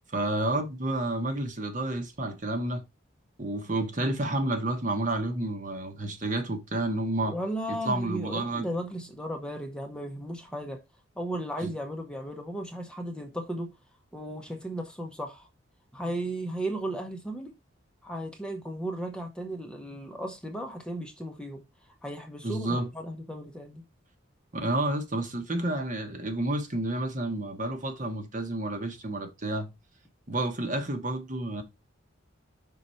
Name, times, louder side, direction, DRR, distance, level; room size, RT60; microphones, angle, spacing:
voice 1, 0.1-2.8 3.4-7.3 7.9-8.7 11.6-11.7 22.4-22.9 24.5-29.7 30.3-31.6, right 2 dB, 40° right, 1.1 m, -30 dB
voice 2, 7.2-10.8 11.2-13.7 14.1-15.5 15.9-17.5 18.0-21.6 22.0-23.8, right 1 dB, 5° left, 0.8 m, -35 dB
5.5 x 3.9 x 4.4 m
head